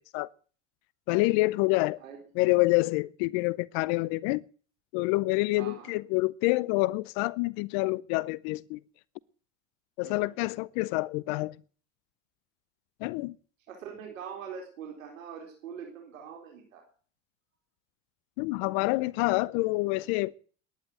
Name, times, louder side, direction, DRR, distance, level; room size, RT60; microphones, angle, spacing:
voice 1, 1.1-2.0 2.4-4.4 4.9-8.8 10.0-11.6 13.0-13.4 18.4-20.4, left 22 dB, 65° left, 0.7 m, -27 dB
voice 2, 5.5-5.9 10.0-10.3 13.7-16.8, right 7 dB, 90° right, 3.9 m, -43 dB
12.0 x 10.5 x 9.2 m
hypercardioid pair, 80°, 38 cm